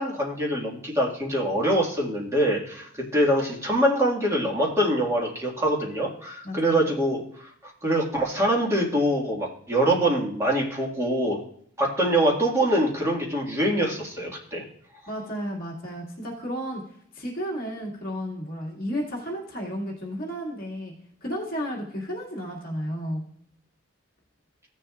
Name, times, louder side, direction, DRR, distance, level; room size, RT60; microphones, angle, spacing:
voice 1, 0.0-7.2 7.6-11.4 11.8-14.6, right 1 dB, 15° right, -3 dB, 1.8 m, -24 dB
voice 2, 6.4-6.8 15.1-16.8 17.1-20.9 21.2-23.3, equal, 45° left, -4 dB, 2.0 m, -32 dB
15.0 x 7.1 x 2.4 m, 0.64 s
head